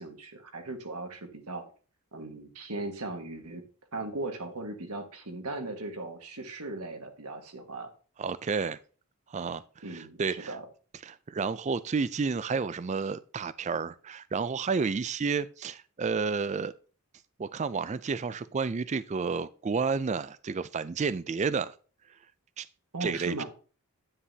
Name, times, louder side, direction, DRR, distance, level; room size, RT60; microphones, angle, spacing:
voice 1, 0.0-1.6 2.1-3.6 3.9-7.9 9.8-10.6 22.9-23.4, right 2 dB, 85° right, 1.7 m, -38 dB
voice 2, 8.2-8.8 9.3-9.6 9.9-10.5 11.0-16.7 17.4-21.7 22.6-22.7 23.0-23.4, right 5 dB, 30° right, 0.3 m, -31 dB
9.8 x 9.3 x 2.8 m
head